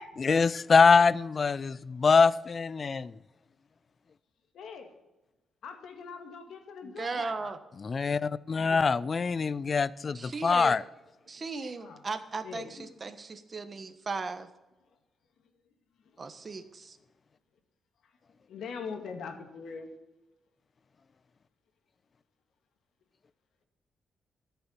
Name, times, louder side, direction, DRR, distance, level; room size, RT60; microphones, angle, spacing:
voice 1, 0.2-3.1 7.8-10.8, left 5 dB, 40° left, 0.4 m, -24 dB
voice 2, 4.5-4.9 5.6-7.5 11.8-12.0 12.4-12.7 16.5-16.6 18.5-19.9, left 5 dB, 75° left, 2.2 m, -42 dB
voice 3, 6.8-7.6 10.1-10.8 11.3-14.5 16.2-17.0, right 4 dB, 35° right, 1.3 m, -37 dB
14.0 x 6.9 x 9.9 m
cardioid pair, 110°, 0 cm